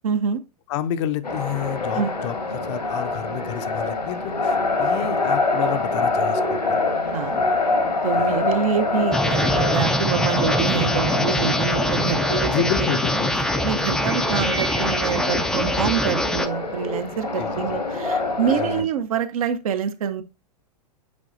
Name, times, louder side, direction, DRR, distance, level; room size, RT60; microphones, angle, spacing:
voice 1, 0.0-0.4 1.9-2.1 7.1-7.4 8.0-12.5 13.6-20.2, right 8 dB, 60° right, 0.9 m, -26 dB
voice 2, 0.7-6.8 7.3-7.6 8.2-8.4 12.5-13.4 17.4-17.8 18.6-18.9, left 10 dB, 45° left, 0.6 m, -30 dB
sound 1, 1.2-18.8, left 3 dB, 85° left, 1.5 m, -25 dB
sound 2, 9.1-16.5, left 1 dB, 5° left, 0.4 m, -24 dB
8.3 x 4.8 x 2.6 m
figure-of-eight pair, 105°, 21 cm